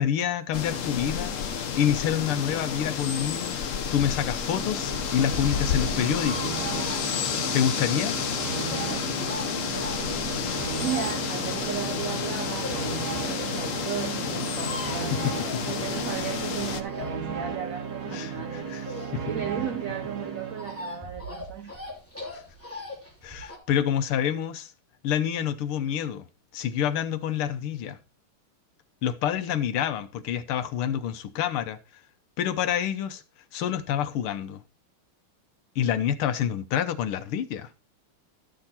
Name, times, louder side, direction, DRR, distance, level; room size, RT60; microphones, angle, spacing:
voice 1, 0.0-1.4 1.8-3.6 3.9-6.7 7.5-8.1 14.8-15.6 18.1-18.8 19.1-19.2 22.3-22.4 23.2-24.7 25.0-26.2 26.5-28.0 29.0-31.8 32.4-33.2 33.5-34.6 35.8-37.7, left 9 dB, 85° left, 1.8 m, -27 dB
sound 1, 0.5-16.8, left 7 dB, 60° left, 0.8 m, -30 dB
sound 2, 4.3-21.1, right 6 dB, 60° right, 2.3 m, -35 dB
sound 3, 6.1-12.9 13.4-13.5 13.7-13.8 14.0-14.1 14.2-16.1 16.5-19.5 19.8-23.6, left 2 dB, 5° left, 3.1 m, -40 dB
voice 2, 10.7-12.8 13.1-15.2 15.7-18.7 19.3-21.8, right 8 dB, 90° right, 0.7 m, -35 dB
12.5 x 6.3 x 4.2 m
omnidirectional pair, 2.3 m